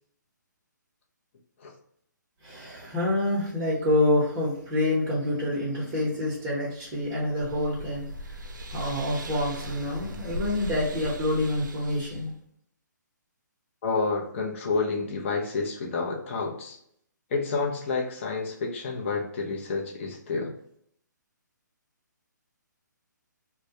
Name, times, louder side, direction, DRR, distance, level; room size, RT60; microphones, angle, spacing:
voice 1, 2.4-8.4 8.7-12.3, left 1 dB, 20° right, -6 dB, 0.7 m, -27 dB
sound 1, 6.9-12.3, right 1 dB, 75° right, 0.4 m, -39 dB
voice 2, 13.8-16.8 17.3-20.6, left 4 dB, 40° left, 0 dB, 0.6 m, -29 dB
2.2 x 2.1 x 2.7 m, 0.69 s
hypercardioid pair, 145°, 10 cm